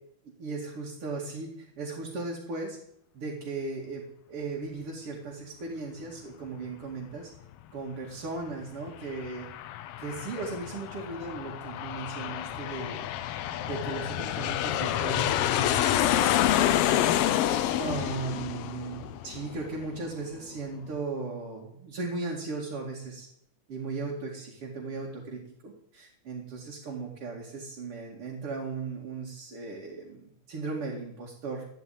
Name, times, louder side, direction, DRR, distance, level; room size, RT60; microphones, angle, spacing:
voice 1, 0.4-2.8 3.1-7.3 7.7-9.5 10.0-13.1 13.5-16.9 17.2-23.3 23.7-31.6, right 3 dB, 50° right, -3 dB, 3.1 m, -37 dB
Aircraft, 8.9-20.0, left 12 dB, 75° left, 1.4 m, -28 dB
13.0 x 9.6 x 9.2 m, 0.73 s
omnidirectional pair, 3.4 m